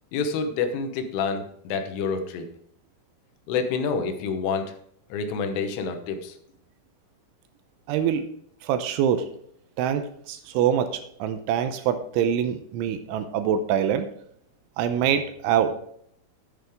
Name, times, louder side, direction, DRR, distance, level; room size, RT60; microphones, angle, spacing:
voice 1, 0.1-2.5 3.5-4.7 5.1-6.3, left 5 dB, 80° left, 7 dB, 3.4 m, -28 dB
voice 2, 7.9-8.3 8.6-9.3 9.8-14.1 14.8-15.8, right 9 dB, 80° right, 9 dB, 2.9 m, -25 dB
10.5 x 9.2 x 3.5 m, 0.67 s
omnidirectional pair, 5.8 m